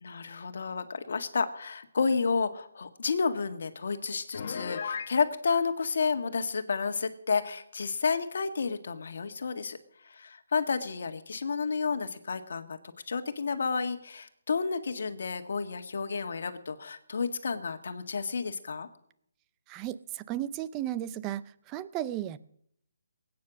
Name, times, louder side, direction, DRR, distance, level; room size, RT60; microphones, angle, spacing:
voice 1, 0.0-9.8 10.0-12.8 13.1-18.9, left 5 dB, 65° left, 8 dB, 1.8 m, -31 dB
Piano, 4.3-5.2, left 6 dB, 45° left, 1.2 m, -35 dB
voice 2, 19.7-22.4, right 12 dB, 15° right, 16 dB, 0.5 m, -35 dB
20.0 x 9.5 x 6.4 m, 0.68 s
hypercardioid pair, 165°, 0 cm